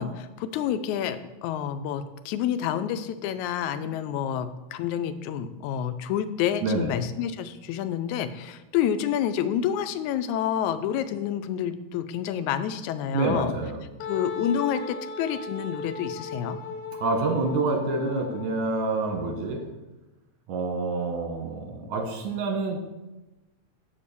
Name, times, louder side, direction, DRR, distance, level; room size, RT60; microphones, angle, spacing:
voice 1, 0.0-13.5 14.1-16.6, left 9 dB, 90° left, 11 dB, 2.0 m, -28 dB
voice 2, 6.6-6.9 13.1-13.8 17.0-19.6 20.5-22.8, right 3 dB, 80° right, 3 dB, 2.9 m, -27 dB
Wind instrument woodwind instrument, 14.0-19.6, left 5 dB, 70° left, 1.5 m, -37 dB
7.4 x 6.9 x 6.8 m, 1.1 s
omnidirectional pair, 3.3 m